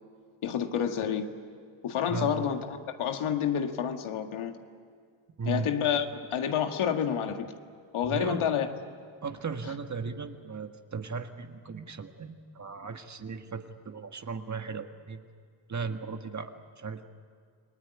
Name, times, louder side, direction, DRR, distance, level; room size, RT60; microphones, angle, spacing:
voice 1, 0.4-1.3 1.8-4.6 5.5-7.5 7.9-8.7, left 8 dB, 75° left, 5 dB, 2.0 m, -29 dB
voice 2, 2.1-2.5 5.4-5.7 8.0-8.5 9.2-15.2 15.7-17.0, right 5 dB, 35° right, 6 dB, 1.7 m, -36 dB
29.0 x 20.0 x 9.7 m, 2.1 s
cardioid pair, 100°, 50 cm